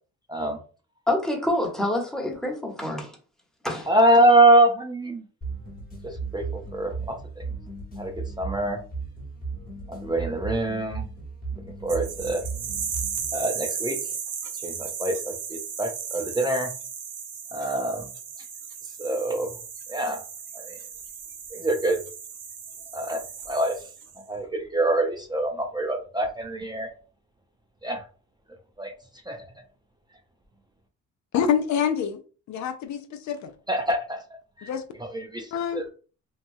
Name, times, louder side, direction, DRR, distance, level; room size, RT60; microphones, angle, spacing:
voice 1, 1.1-3.1 3.6-3.9, left 1 dB, ahead, 0.9 m, -27 dB
voice 2, 3.9-5.2 6.3-6.4 6.7-7.2 8.0-8.1 8.4-8.8 9.9-11.0 11.8-12.4 13.3-14.0 14.6-16.7 17.5-18.0 19.0-19.5 19.9-20.2 20.5-20.8 21.5-22.0 22.9-23.7 24.3-26.9 27.8-28.0 28.8-28.9 29.3-29.4 33.7-34.2 34.6-34.7 35.0-35.5 35.7-35.8, right 1 dB, 15° right, 0.5 m, -24 dB
sound 1, 5.4-13.4, right 4 dB, 30° left, 1.2 m, -36 dB
sound 2, 11.9-24.2, right 7 dB, 85° right, 0.8 m, -36 dB
voice 3, 31.3-32.2 32.5-33.5 34.7-34.8 35.5-35.9, left 8 dB, 70° left, 0.5 m, -26 dB
3.0 x 2.2 x 2.6 m
cardioid pair, 90°, 30 cm